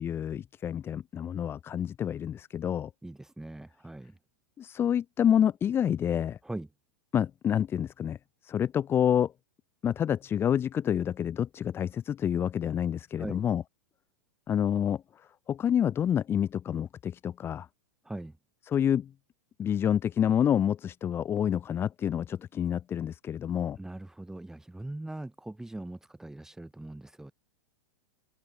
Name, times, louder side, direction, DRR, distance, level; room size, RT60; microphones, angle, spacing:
voice 1, 0.0-2.9 4.6-6.4 7.1-8.2 8.4-9.3 9.8-13.6 14.5-15.0 15.5-17.7 18.7-19.1 19.6-23.8, left 9 dB, 20° left, 0.5 m, -28 dB
voice 2, 3.0-4.2 6.4-6.7 13.2-13.4 18.0-18.4 23.8-27.3, right 1 dB, 5° right, 3.0 m, -41 dB
hypercardioid pair, 120°, 10 cm